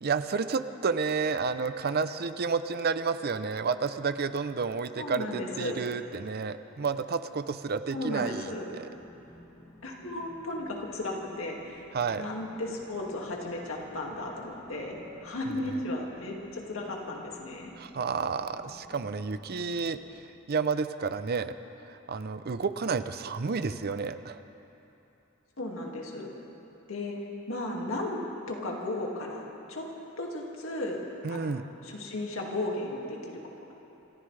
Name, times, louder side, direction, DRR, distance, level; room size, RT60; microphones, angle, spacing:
voice 1, 0.0-8.9 11.9-12.3 15.5-15.8 17.8-20.0 20.5-21.5 21.8-24.4 31.2-31.7, right 5 dB, 50° right, 11 dB, 0.5 m, -31 dB
voice 2, 5.0-5.8 7.9-8.7 9.8-11.9 12.2-17.7 25.6-26.3 26.9-27.2 27.5-28.2 28.5-29.9 30.2-31.0 31.3-31.6 31.8-33.4, left 1 dB, 75° left, -1 dB, 2.2 m, -35 dB
sound 1, 8.9-20.2, left 1 dB, 15° left, 1.2 m, -54 dB
26.5 x 15.0 x 3.3 m, 3.0 s
head